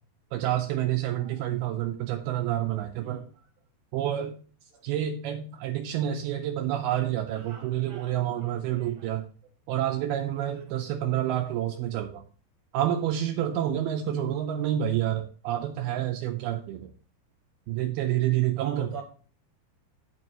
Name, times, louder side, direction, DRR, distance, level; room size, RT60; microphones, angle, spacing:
voice 1, 0.3-3.3 3.9-4.4 4.8-9.3 9.7-12.2 12.7-16.9 17.7-19.0, right 11 dB, 90° right, 2.2 m, -28 dB
voice 2, 7.5-8.1 8.7-9.2 18.6-19.0, right 6 dB, 75° right, 2.2 m, -42 dB
15.5 x 5.4 x 2.9 m
omnidirectional pair, 5.1 m